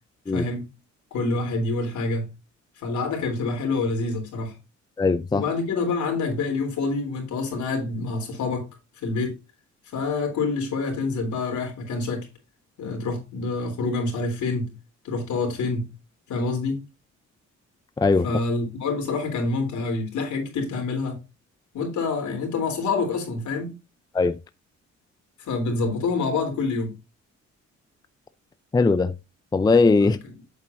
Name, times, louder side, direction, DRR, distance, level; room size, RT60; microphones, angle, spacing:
voice 1, 0.3-0.7 1.1-2.3 2.8-4.6 5.3-8.7 9.0-9.4 9.9-12.3 12.8-14.7 15.0-15.9 16.3-16.8 18.2-21.2 21.7-23.7 25.4-27.0 30.0-30.3, left 3 dB, 75° left, 3.6 m, -27 dB
voice 2, 5.0-5.4 18.0-18.3 24.1-24.4 28.7-29.1 29.5-30.2, left 3 dB, 15° left, 0.4 m, -19 dB
8.4 x 7.3 x 2.6 m
cardioid pair, 90°, 30 cm